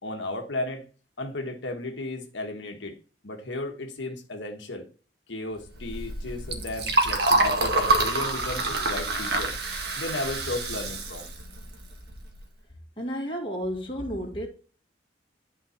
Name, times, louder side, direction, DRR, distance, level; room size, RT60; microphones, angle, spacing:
voice 1, 0.0-0.9 1.2-3.0 3.2-4.9 5.3-9.5 10.0-11.3, left 2 dB, 80° left, 1.3 m, -34 dB
Liquid, 5.7-12.4, right 2 dB, 60° right, 1.8 m, -27 dB
voice 2, 13.0-14.5, equal, 30° left, 2.3 m, -31 dB
11.0 x 4.6 x 4.4 m
head